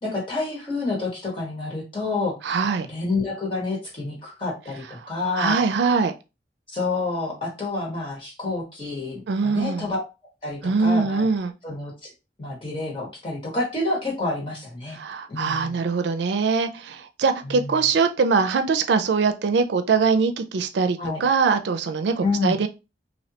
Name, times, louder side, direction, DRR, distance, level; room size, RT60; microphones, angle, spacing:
voice 1, 0.0-2.4 2.8-5.6 6.7-10.0 10.4-11.3 11.6-12.1 12.4-15.0 15.3-15.8 17.4-17.8 21.0-21.2 22.2-22.6, left 3 dB, 30° left, 1.3 m, -28 dB
voice 2, 2.4-2.9 5.4-6.1 9.3-9.8 10.6-11.5 15.0-22.7, right 4 dB, 80° right, 0.4 m, -22 dB
3.2 x 2.7 x 2.8 m
head